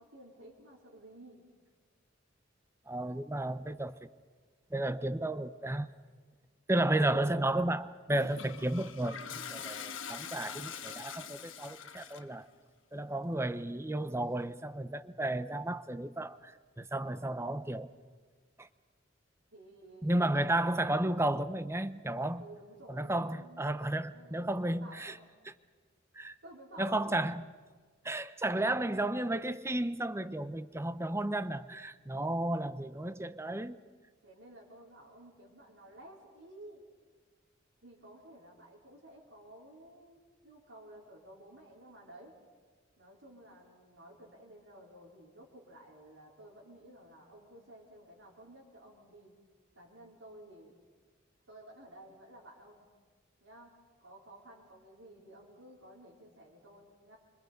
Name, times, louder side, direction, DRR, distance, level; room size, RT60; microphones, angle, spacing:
voice 1, 0.0-1.4 19.5-20.3 22.4-23.6 23.9-25.3 26.4-27.1 34.2-36.8 37.8-42.4 43.0-49.3 49.7-50.7 51.5-52.9 53.4-53.7 54.0-57.2, right 1 dB, 90° right, 4.7 m, -54 dB
voice 2, 2.9-4.0 4.7-5.9 6.7-12.5 12.9-17.9 18.6-18.7 20.0-22.4 22.9-25.2 26.1-26.3 26.8-27.4 28.0-33.8, right 1 dB, 15° right, 0.7 m, -33 dB
Toilet flush, 8.1-12.4, left 7 dB, 85° left, 1.5 m, -44 dB
29.0 x 25.5 x 5.3 m
head